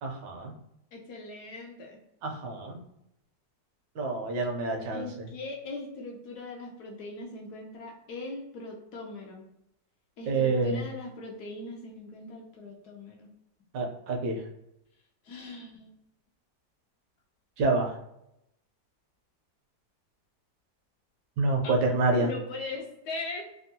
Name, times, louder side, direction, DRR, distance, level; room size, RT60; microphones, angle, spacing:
voice 1, 0.0-0.5 2.2-2.8 4.0-5.0 10.3-10.8 13.7-14.4 17.6-17.9 21.4-22.3, right 3 dB, 75° right, 1 dB, 1.3 m, -27 dB
voice 2, 0.9-2.0 4.9-9.4 10.2-13.3 15.2-15.9 21.6-21.7 22.2-23.4, left 2 dB, 70° left, 1 dB, 1.1 m, -40 dB
3.5 x 2.2 x 2.7 m, 0.80 s
omnidirectional pair, 2.0 m